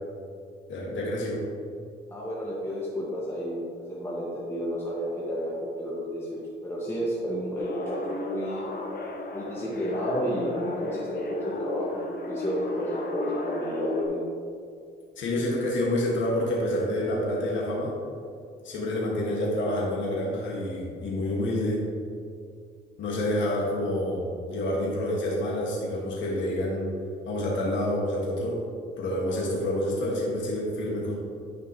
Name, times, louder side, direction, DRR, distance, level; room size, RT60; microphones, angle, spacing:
voice 1, 0.7-1.4 15.2-17.9 18.6-21.8 23.0-26.9 27.2-28.6 29.0-31.1, left 1 dB, 70° left, -4 dB, 1.7 m, -28 dB
voice 2, 2.1-3.6 3.9-8.7 9.3-14.2, equal, 10° left, -7 dB, 1.5 m, -31 dB
sound 1, 7.6-14.0, left 2 dB, 50° left, 1.0 m, -34 dB
10.0 x 5.3 x 3.0 m, 2.3 s
cardioid pair, 90°, 20 cm